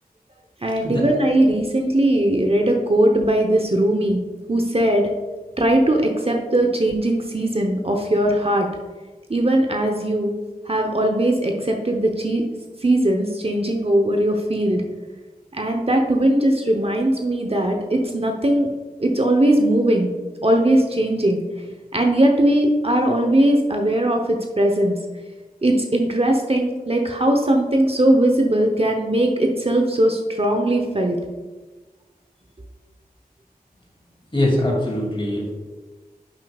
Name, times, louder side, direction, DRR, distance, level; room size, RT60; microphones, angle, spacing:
voice 1, 0.6-4.2 4.5-5.1 5.6-8.7 9.3-10.3 10.7-12.4 12.8-14.8 15.5-18.7 19.0-20.1 20.4-21.4 21.9-25.0 25.6-31.2, right 1 dB, 40° right, 2 dB, 0.9 m, -19 dB
voice 2, 34.3-35.5, left 1 dB, 35° left, -2 dB, 2.5 m, -22 dB
10.0 x 7.1 x 2.4 m, 1.2 s
wide cardioid pair, 50°, 16 cm